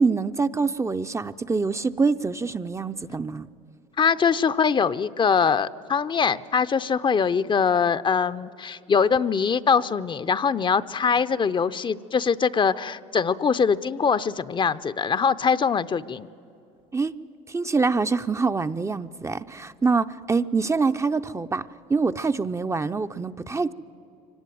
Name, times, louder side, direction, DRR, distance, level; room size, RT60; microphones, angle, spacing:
voice 1, 0.0-3.5 16.9-17.1 17.5-21.6 21.9-23.7, right 4 dB, 15° right, 10 dB, 0.6 m, -25 dB
voice 2, 4.0-16.3, left 6 dB, 30° left, 14 dB, 0.6 m, -23 dB
24.5 x 18.0 x 9.3 m, 2.8 s
supercardioid pair, 80°, 17 cm